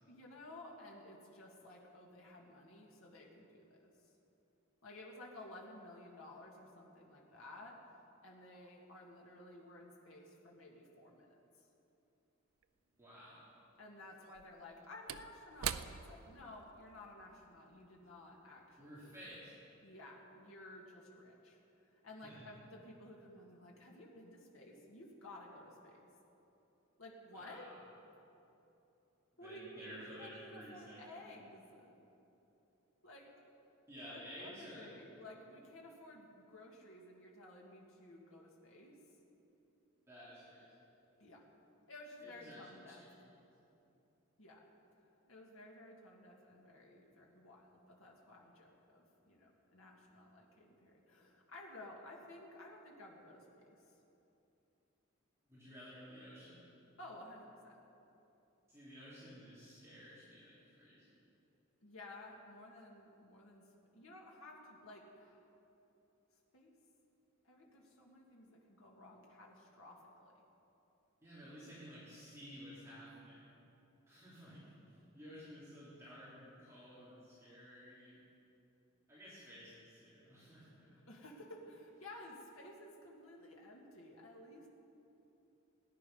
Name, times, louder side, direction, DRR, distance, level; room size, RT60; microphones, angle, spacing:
voice 1, 0.1-4.1 4.8-11.4 13.8-19.3 19.8-26.1 27.0-27.7 29.4-31.9 33.0-33.5 34.1-39.0 41.2-41.4 41.9-43.0 44.4-44.7 45.0-53.9 57.0-57.8 61.8-63.6 63.9-65.4 66.5-66.7 67.4-70.4 81.1-84.7, left 1 dB, 80° left, -2 dB, 2.0 m, -54 dB
Slam / Wood, 12.6-12.7 14.2-18.9 19.2-19.4, right 9 dB, 85° right, 0.5 m, -46 dB
voice 2, 13.0-13.5 18.8-19.6 22.2-22.5 27.3-27.8 29.4-31.2 33.9-34.9 40.1-40.7 42.2-42.7 43.0-43.2 55.5-56.6 58.7-61.2 71.2-73.5 74.1-78.2 79.1-81.0, equal, 15° right, -11 dB, 3.2 m, -53 dB
18.5 x 10.5 x 5.5 m, 3.0 s
head